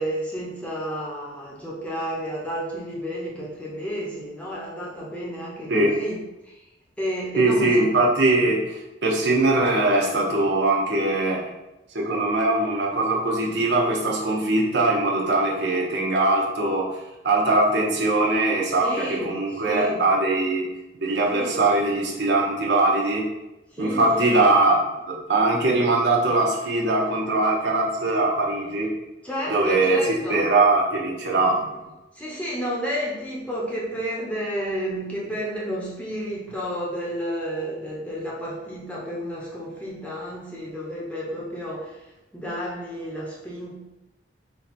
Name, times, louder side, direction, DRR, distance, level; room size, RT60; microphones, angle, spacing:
voice 1, 0.0-6.1 6.4-6.6 7.0-7.7 8.4-8.5 18.8-20.1 21.3-21.9 23.7-24.4 29.2-30.6 31.4-31.9 32.1-42.1 42.3-43.7, equal, 5° left, -5 dB, 0.9 m, -31 dB
voice 2, 7.4-8.6 9.0-11.4 11.9-16.9 17.2-20.7 21.0-23.3 23.8-28.9 29.5-30.0 30.3-31.6, right 2 dB, 75° right, -3 dB, 1.0 m, -21 dB
4.5 x 2.2 x 4.2 m, 0.97 s
head